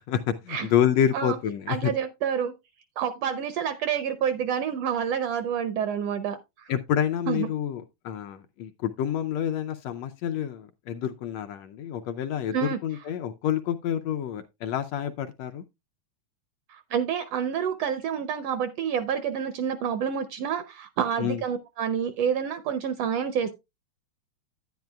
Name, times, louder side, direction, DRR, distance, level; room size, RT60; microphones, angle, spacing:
voice 1, 0.4-1.9 6.7-15.6 21.2-21.4, left 9 dB, 75° left, 1.6 m, -28 dB
voice 2, 1.7-2.5 3.0-6.7 7.3-7.5 12.5-12.8 16.7-23.5, right 8 dB, 75° right, 1.5 m, -28 dB
10.5 x 9.7 x 2.2 m
omnidirectional pair, 3.4 m